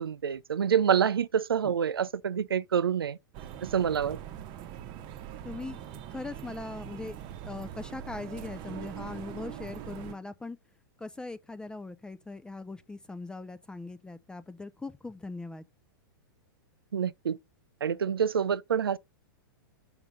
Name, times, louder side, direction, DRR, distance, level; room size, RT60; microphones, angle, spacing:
voice 1, 0.0-3.2 3.6-4.2 16.9-17.4 17.8-19.0, right 8 dB, 85° right, 0.5 m, -27 dB
sound 1, 3.3-10.2, right 10 dB, 40° right, 0.9 m, -42 dB
voice 2, 5.4-5.8 6.1-7.2 7.4-10.6 11.0-15.6, left 3 dB, 5° left, 0.5 m, -40 dB
5.8 x 5.0 x 5.4 m
hypercardioid pair, 110°, 12 cm